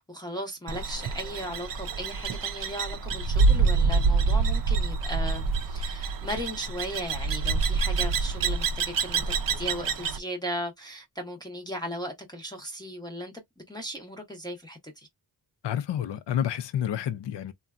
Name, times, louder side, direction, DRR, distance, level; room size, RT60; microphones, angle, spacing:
voice 1, 0.0-9.2 9.6-13.3 13.7-15.1, equal, 10° left, 0.7 m, -37 dB
sound 1, 0.7-10.2, right 4 dB, 55° right, 0.5 m, -26 dB
voice 2, 15.6-17.5, left 10 dB, 80° left, 0.5 m, -29 dB
3.7 x 2.2 x 2.3 m
wide cardioid pair, 155°, 42 cm